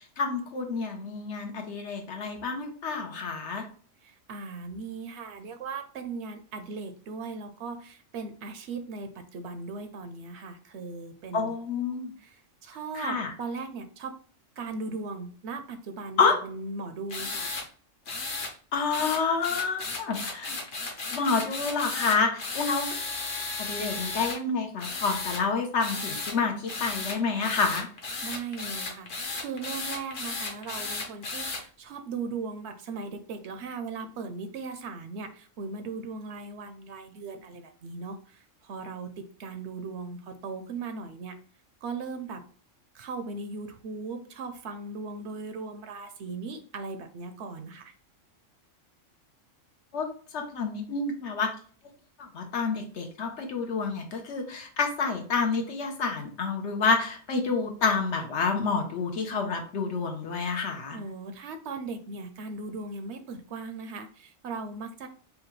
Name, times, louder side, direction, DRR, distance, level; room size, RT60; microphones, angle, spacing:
voice 1, 0.2-3.7 11.3-12.1 12.9-13.3 16.2-16.4 18.7-20.5 21.1-22.9 23.7-27.9 49.9-50.0 50.3-51.5 52.3-61.0, left 4 dB, 65° left, 3 dB, 1.1 m, -28 dB
voice 2, 4.0-11.5 12.2-14.2 14.6-17.5 28.2-29.1 29.3-41.4 41.8-42.4 42.9-47.9 60.9-65.1, right 4 dB, 70° right, 7 dB, 0.8 m, -38 dB
sound 1, 17.1-17.6 18.1-18.5 18.9-24.4 24.8-25.4 25.8-26.3 26.7-31.6, left 3 dB, 45° left, 0.9 m, -34 dB
5.1 x 2.3 x 3.1 m, 0.43 s
omnidirectional pair, 1.3 m